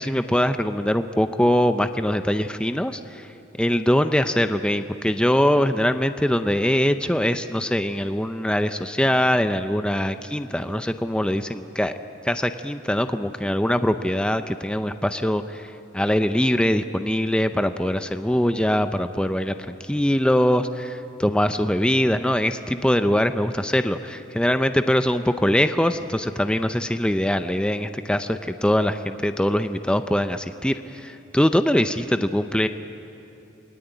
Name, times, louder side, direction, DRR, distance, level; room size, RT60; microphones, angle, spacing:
voice 1, 0.0-3.3 3.6-11.9 12.2-15.7 15.9-32.7, equal, 5° left, 9 dB, 0.6 m, -22 dB
28.5 x 21.0 x 9.2 m, 2.9 s
head